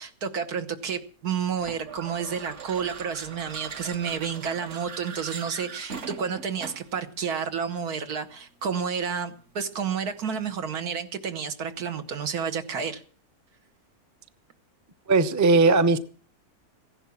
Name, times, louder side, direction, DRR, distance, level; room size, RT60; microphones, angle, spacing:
voice 1, 0.0-13.0, right 6 dB, 85° right, 8 dB, 1.8 m, -30 dB
sound 1, 1.6-7.0, right 5 dB, 55° right, 1.4 m, -40 dB
voice 2, 15.1-16.0, right 3 dB, 20° right, 12 dB, 0.4 m, -18 dB
15.5 x 11.0 x 7.1 m, 0.42 s
omnidirectional pair, 1.6 m